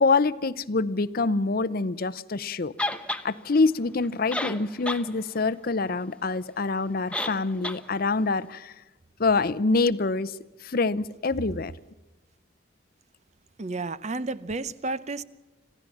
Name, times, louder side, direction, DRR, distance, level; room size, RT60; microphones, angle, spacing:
voice 1, 0.0-2.7 3.2-8.7 9.2-10.3 10.6-11.7, left 3 dB, 50° left, 0.7 m, -25 dB
sound 1, 2.8-3.2 4.0-4.1 4.3-5.0 5.4-5.5 7.1-7.4 7.6-7.8, left 1 dB, 5° left, 0.9 m, -29 dB
voice 2, 13.6-15.2, right 3 dB, 35° right, 0.7 m, -31 dB
26.5 x 15.5 x 7.2 m
head